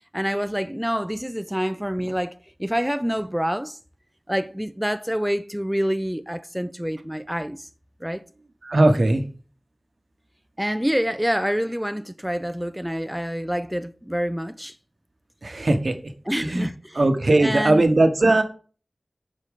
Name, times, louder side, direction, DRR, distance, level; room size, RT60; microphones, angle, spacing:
voice 1, 0.1-3.8 4.3-7.7 8.0-8.2 10.6-14.8 16.3-17.0 17.4-17.8, equal, 5° right, 0.4 m, -27 dB
voice 2, 8.6-9.2 15.4-16.1 16.4-16.7 16.9-18.4, right 2 dB, 60° right, 0.9 m, -19 dB
6.1 x 4.2 x 4.9 m
cardioid pair, 40°, 0 cm